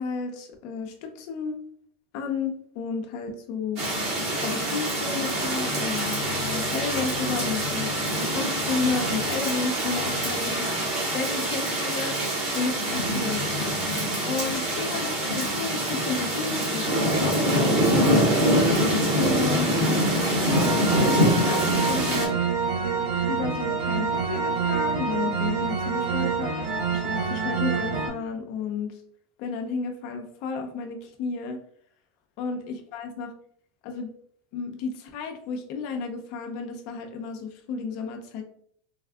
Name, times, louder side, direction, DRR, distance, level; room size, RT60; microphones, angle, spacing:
voice 1, 0.0-1.5 2.1-3.8 4.2-10.8 11.1-12.2 12.5-13.5 14.3-18.3 19.2-20.4 20.6-22.4 23.3-26.7 26.9-28.9 29.4-31.6 32.4-33.3 33.8-34.1 34.5-38.4, left 5 dB, 60° left, 4 dB, 0.5 m, -32 dB
sound 1, 3.8-22.3, equal, 55° right, 1.5 m, -25 dB
sound 2, 20.5-28.1, right 5 dB, 70° right, 0.9 m, -27 dB
3.4 x 2.3 x 2.3 m, 0.62 s
supercardioid pair, 120°, 0 cm